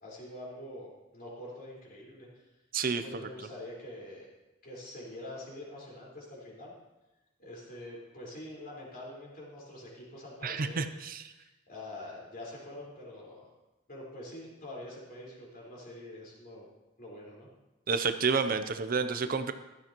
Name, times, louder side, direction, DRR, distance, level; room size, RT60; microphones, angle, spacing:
voice 1, 0.0-2.3 3.0-4.3 4.6-6.7 7.4-10.9 11.3-13.5 13.9-16.7 17.0-17.5, left 1 dB, 50° left, -4 dB, 4.5 m, -45 dB
voice 2, 10.4-11.2 17.9-19.5, right 5 dB, 50° right, 9 dB, 0.6 m, -29 dB
15.5 x 13.0 x 3.0 m, 1.0 s
head